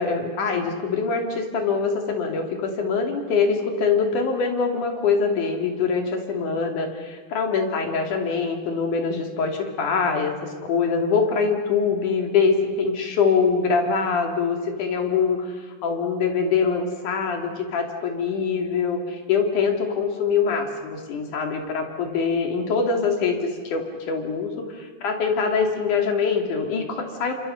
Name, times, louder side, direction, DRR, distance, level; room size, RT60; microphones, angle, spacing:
voice 1, 0.0-10.3 10.6-27.3, left 5 dB, 75° left, 3 dB, 4.0 m, -24 dB
29.0 x 26.0 x 5.7 m, 1.5 s
omnidirectional pair, 3.6 m